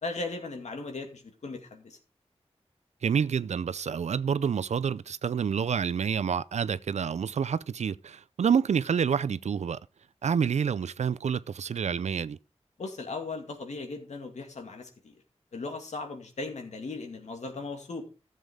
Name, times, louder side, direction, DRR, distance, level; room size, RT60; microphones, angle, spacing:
voice 1, 0.0-2.0 12.8-15.1 15.5-18.0, left 3 dB, 85° left, 2.2 m, -37 dB
voice 2, 3.0-9.8 10.2-12.4, right 7 dB, 80° right, 0.4 m, -28 dB
13.5 x 7.4 x 3.6 m
wide cardioid pair, 65°, 11 cm